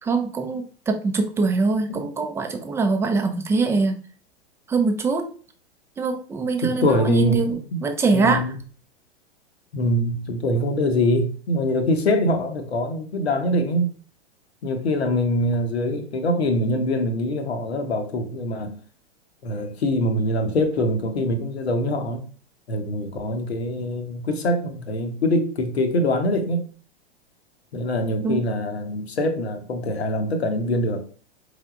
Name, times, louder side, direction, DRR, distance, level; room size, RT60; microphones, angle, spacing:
voice 1, 0.0-4.0 4.7-5.3 6.0-8.5 28.2-28.4, right 4 dB, 10° right, 0.4 m, -23 dB
voice 2, 6.6-7.8 8.1-8.5 9.7-13.9 14.6-18.8 19.4-22.2 22.7-26.6 27.7-31.1, left 1 dB, 75° left, 1.0 m, -24 dB
4.3 x 3.4 x 2.4 m
figure-of-eight pair, 100°, 32 cm